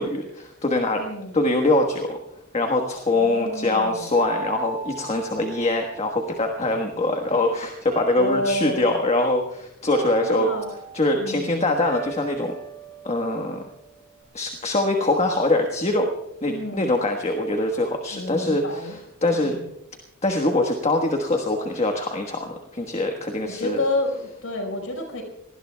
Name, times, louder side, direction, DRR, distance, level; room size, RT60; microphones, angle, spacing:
voice 1, 0.0-1.0 1.3-2.2 2.5-10.5 10.9-12.5 13.0-13.6 14.3-16.1 16.4-19.6 20.2-23.8, left 2 dB, 30° left, 3 dB, 1.3 m, -23 dB
voice 2, 1.0-1.4 3.2-4.1 8.2-9.0 10.2-10.7 11.1-11.8 16.5-16.9 18.1-19.0 19.4-19.7 23.4-25.2, left 1 dB, 75° left, 1 dB, 5.1 m, -29 dB
sound 1, 4.1-6.5 7.9-8.9 9.9-11.2 11.9-14.2, right 4 dB, 40° right, 4.0 m, -38 dB
27.0 x 19.5 x 2.3 m, 0.84 s
head